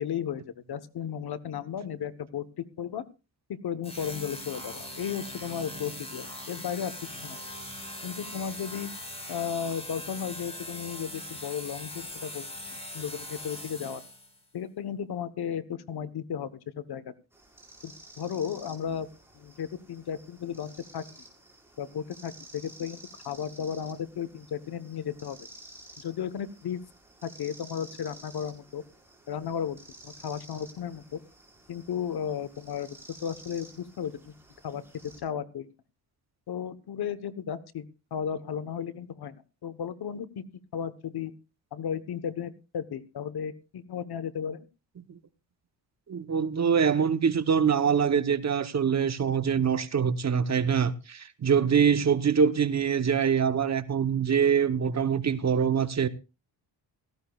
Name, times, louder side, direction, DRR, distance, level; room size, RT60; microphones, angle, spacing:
voice 1, 0.0-3.0 3.5-6.9 7.2-7.4 8.0-8.9 9.3-12.5 12.9-14.0 14.5-17.1 17.8-19.1 19.3-21.0 21.8-25.5 26.0-26.8 27.2-28.8 29.3-29.8 30.0-31.2 31.7-34.3 34.6-34.8 35.2-35.7 36.5-39.4 39.6-40.4 40.7-41.3 41.7-44.7, left 8 dB, 60° left, 1.1 m, -34 dB
sound 1, 3.8-14.4, left 1 dB, 15° left, 4.8 m, -41 dB
sound 2, 17.3-35.2, right 1 dB, 5° right, 4.7 m, -52 dB
voice 2, 46.1-56.1, right 7 dB, 40° right, 0.9 m, -24 dB
17.0 x 15.0 x 2.3 m
cardioid pair, 110°, 44 cm